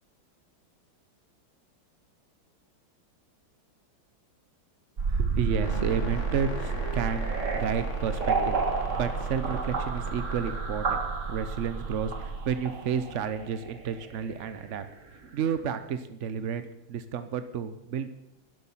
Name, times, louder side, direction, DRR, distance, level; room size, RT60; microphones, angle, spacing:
sound 1, 5.0-15.0, right 4 dB, 40° right, 1.9 m, -31 dB
voice 1, 5.1-11.0 11.3-14.8 15.3-18.1, right 7 dB, 70° right, 11 dB, 0.7 m, -31 dB
sound 2, 5.6-10.6, left 3 dB, 35° left, 1.9 m, -42 dB
12.0 x 11.0 x 7.2 m, 0.86 s
omnidirectional pair, 2.3 m